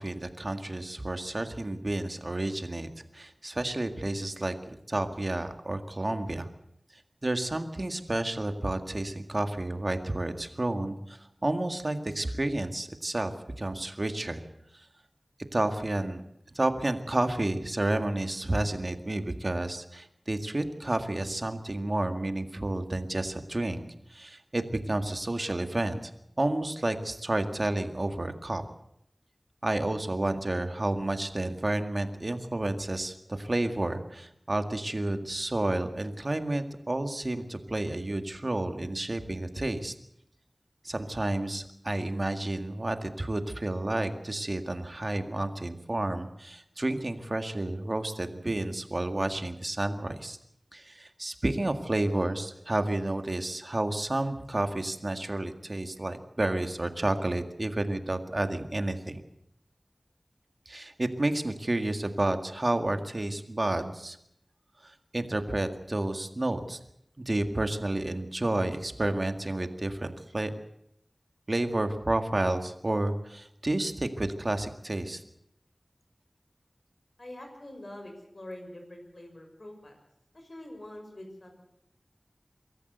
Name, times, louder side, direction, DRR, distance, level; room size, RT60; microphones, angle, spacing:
voice 1, 0.0-2.9 3.1-4.6 4.9-6.5 7.2-14.4 15.5-16.2 16.5-23.8 24.1-26.1 26.4-28.6 29.6-39.9 40.8-50.4 50.7-59.2 60.7-64.2 64.8-66.8 67.2-70.5 71.5-75.2, right 1 dB, 50° right, 7 dB, 2.0 m, -30 dB
voice 2, 77.2-80.0 80.3-81.6, left 1 dB, 60° left, 4 dB, 6.5 m, -45 dB
24.5 x 13.5 x 8.1 m, 0.75 s
wide cardioid pair, 40°, 0 cm